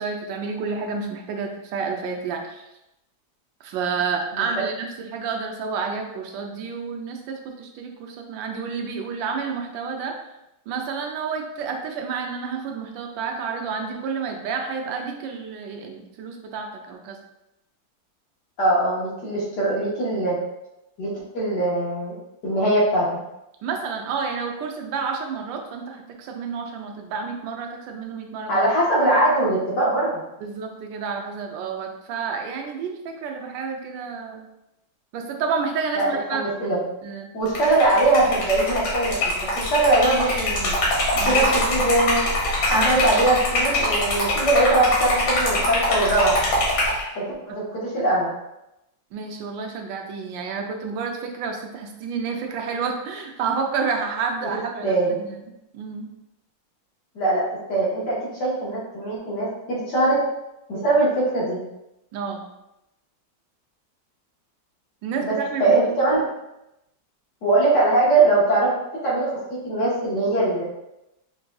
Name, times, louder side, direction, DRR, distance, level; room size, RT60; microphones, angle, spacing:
voice 1, 0.0-2.6 3.6-10.2 10.7-17.2 23.6-28.6 30.4-34.5 35.1-36.4 37.0-37.3 41.1-41.5 42.7-42.9 49.1-55.3 55.7-56.1 62.1-62.5 65.0-65.8, right 5 dB, 80° right, 3 dB, 1.3 m, -30 dB
voice 2, 18.6-20.4 21.0-22.1 22.4-23.1 28.5-30.2 35.9-36.8 37.3-40.7 41.2-42.2 42.7-46.4 47.1-48.3 54.4-54.5 54.8-55.2 57.1-57.4 57.7-60.2 60.7-61.6 65.2-66.2 67.4-68.7 69.0-70.6, right 2 dB, 65° left, -6 dB, 1.7 m, -21 dB
Liquid, 37.5-47.0, left 1 dB, 85° left, 1.9 m, -23 dB
5.6 x 2.6 x 2.3 m, 0.90 s
omnidirectional pair, 2.1 m